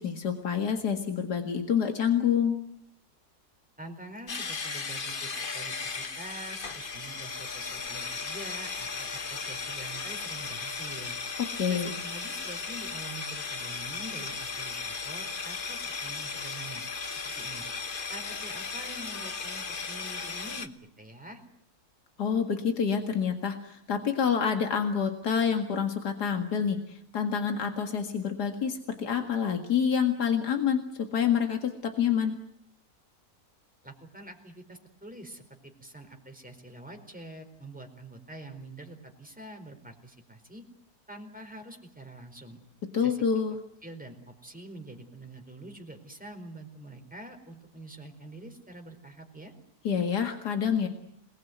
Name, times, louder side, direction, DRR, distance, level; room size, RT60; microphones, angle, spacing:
voice 1, 0.0-2.6 11.6-11.9 22.2-32.4 42.9-43.6 49.8-50.9, left 7 dB, 85° left, 5 dB, 2.5 m, -27 dB
voice 2, 3.8-11.2 11.7-16.8 17.1-17.6 18.1-21.4 33.8-40.6 41.1-42.6 43.0-43.2 43.8-49.5, right 1 dB, 5° right, 3 dB, 4.5 m, -45 dB
sound 1, 4.3-20.7, left 4 dB, 35° left, 1.3 m, -36 dB
28.0 x 20.0 x 9.4 m, 0.72 s
omnidirectional pair, 1.7 m